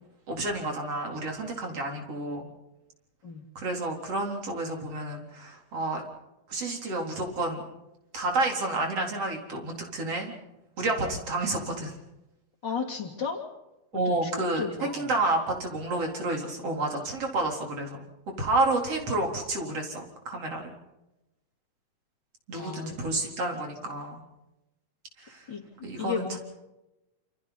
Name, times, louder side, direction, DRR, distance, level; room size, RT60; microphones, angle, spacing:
voice 1, 0.3-2.5 3.6-6.0 6.5-7.6 8.1-10.3 10.8-11.9 13.9-14.6 14.9-18.0 18.4-20.7 22.5-24.2 25.2-25.5 25.8-26.4, right 2 dB, 55° right, 2 dB, 4.8 m, -30 dB
voice 2, 12.6-13.4 14.1-14.3 14.6-15.1 22.5-23.0 25.5-26.4, left 6 dB, 35° left, 1 dB, 3.4 m, -34 dB
28.5 x 27.5 x 4.2 m, 0.96 s
omnidirectional pair, 3.4 m